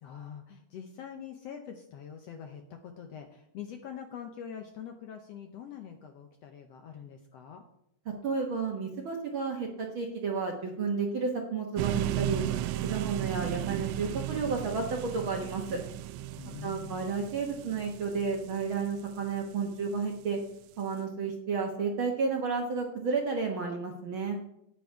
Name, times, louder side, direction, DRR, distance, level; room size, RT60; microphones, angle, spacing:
voice 1, 0.0-7.6 16.4-17.1, left 8 dB, 70° left, 5 dB, 1.6 m, -44 dB
voice 2, 8.2-12.4 12.8-15.8 16.6-20.4 20.8-24.4, right 5 dB, 55° right, 1 dB, 1.5 m, -32 dB
sound 1, 11.8-19.8, right 13 dB, 80° right, 1.7 m, -35 dB
9.3 x 8.9 x 4.6 m, 0.77 s
omnidirectional pair, 3.6 m